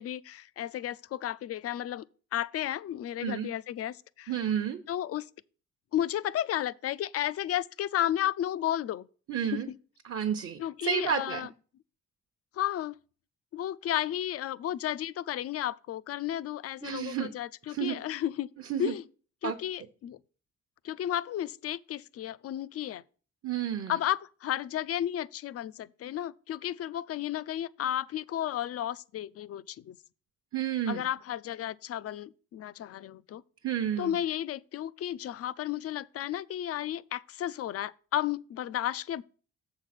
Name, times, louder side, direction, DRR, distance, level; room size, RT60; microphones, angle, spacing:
voice 1, 0.0-2.0 2.3-4.3 4.9-5.3 5.9-9.1 9.4-9.8 10.6-11.5 12.5-12.9 13.5-18.5 18.8-19.0 19.4-20.2 20.8-23.0 23.9-30.0 30.9-33.4 34.0-39.2, left 12 dB, 55° left, 0.4 m, -33 dB
voice 2, 4.3-4.8 9.3-9.7 10.0-11.4 16.8-17.3 17.7-18.0 18.7-18.9 19.4-19.5 23.4-23.9 30.5-31.0 33.6-34.2, right 9 dB, 50° right, 0.9 m, -31 dB
7.0 x 4.8 x 5.8 m
cardioid pair, 90°, 30 cm